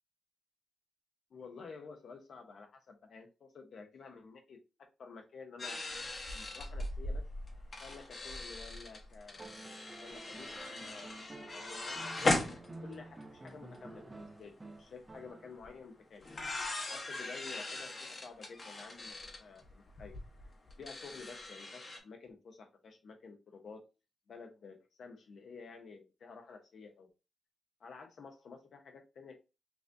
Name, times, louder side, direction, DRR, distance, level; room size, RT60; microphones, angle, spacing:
voice 1, 1.3-4.6 5.0-5.8 6.3-7.3 7.8-9.5 10.0-16.3 16.9-20.1 20.8-23.8 24.3-27.1 27.8-29.4, left 4 dB, 65° left, 0.8 m, -51 dB
sound 1, 5.6-13.2 13.5-13.6 13.7-14.2 15.6-15.7 16.2-22.0, left 2 dB, 40° left, 1.0 m, -39 dB
sound 2, 9.4-15.8 17.3-17.4, right 2 dB, 20° right, 0.6 m, -50 dB
5.7 x 2.6 x 2.6 m
wide cardioid pair, 120°, 0 cm